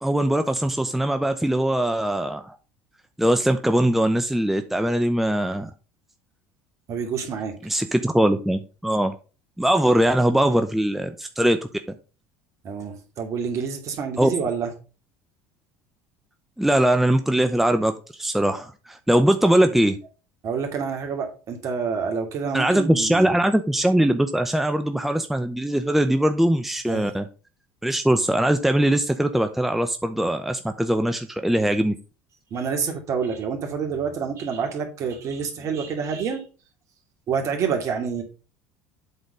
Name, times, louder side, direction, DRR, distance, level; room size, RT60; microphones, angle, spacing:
voice 1, 0.0-2.6 3.2-5.7 7.6-9.1 9.6-11.6 14.2-14.3 16.6-20.0 22.5-27.3 27.8-31.9, right 1 dB, 5° right, 7 dB, 0.7 m, -21 dB
voice 2, 6.9-7.5 12.6-14.7 20.4-23.3 26.9-27.1 32.5-36.4 37.3-38.2, right 6 dB, 50° right, 4 dB, 2.5 m, -28 dB
8.0 x 4.2 x 5.3 m, 0.34 s
hypercardioid pair, 80°, 7 cm